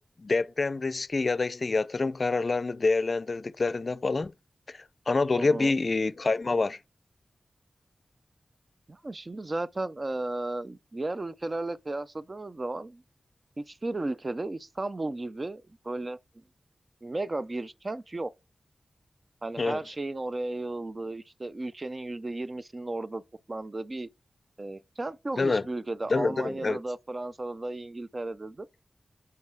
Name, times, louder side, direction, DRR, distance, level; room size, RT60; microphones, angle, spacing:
voice 1, 0.2-4.3 4.7-6.8 19.6-19.8 25.4-25.7 26.1-26.8, left 3 dB, 55° left, 0.4 m, -27 dB
voice 2, 5.4-5.7 8.9-13.0 13.6-16.2 17.0-18.3 19.4-23.2 23.5-24.1 24.6-28.7, right 2 dB, 45° right, 0.5 m, -34 dB
5.3 x 4.6 x 4.7 m
cardioid pair, 50°, 0 cm